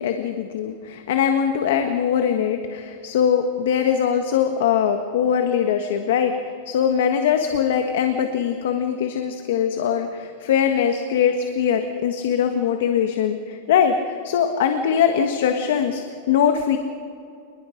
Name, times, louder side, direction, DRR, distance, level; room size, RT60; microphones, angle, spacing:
voice 1, 0.0-16.8, left 8 dB, 65° left, 6 dB, 1.5 m, -21 dB
27.5 x 21.0 x 5.2 m, 2.4 s
supercardioid pair, 170°, 0 cm